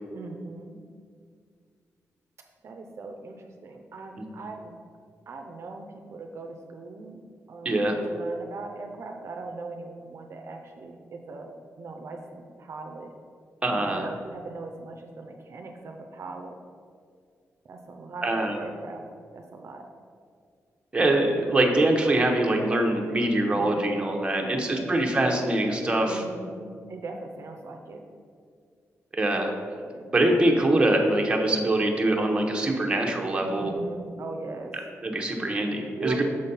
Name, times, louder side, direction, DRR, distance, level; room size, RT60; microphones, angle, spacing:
voice 1, 0.1-0.8 2.6-4.7 5.3-7.2 7.5-11.5 11.8-13.1 13.7-16.6 17.6-19.1 19.3-19.9 23.5-23.9 24.4-24.9 26.1-28.0 29.8-30.1 33.5-34.8 35.9-36.2, right 3 dB, 55° right, 3 dB, 0.5 m, -40 dB
voice 2, 7.6-8.0 13.6-14.1 18.2-18.6 20.9-26.2 29.1-29.5 30.1-33.7 35.0-36.2, right 1 dB, 20° right, 1 dB, 0.8 m, -23 dB
6.5 x 4.1 x 5.4 m, 2.1 s
wide cardioid pair, 140°, 6 cm